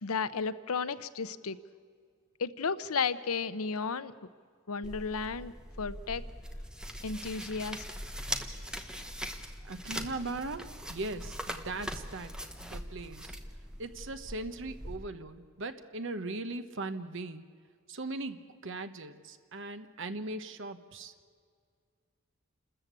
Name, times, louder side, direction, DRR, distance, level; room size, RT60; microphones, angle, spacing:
voice 1, 0.0-1.6 2.4-4.1 4.7-5.5 5.8-6.2 7.0-7.8, left 5 dB, 85° left, 14 dB, 0.8 m, -33 dB
sound 1, 4.8-15.0, equal, 5° right, 1.0 m, -41 dB
voice 2, 9.6-12.3 12.6-13.4 13.8-17.4 17.9-21.1, right 2 dB, 60° right, 10 dB, 1.1 m, -39 dB
28.5 x 13.5 x 8.3 m, 2.1 s
head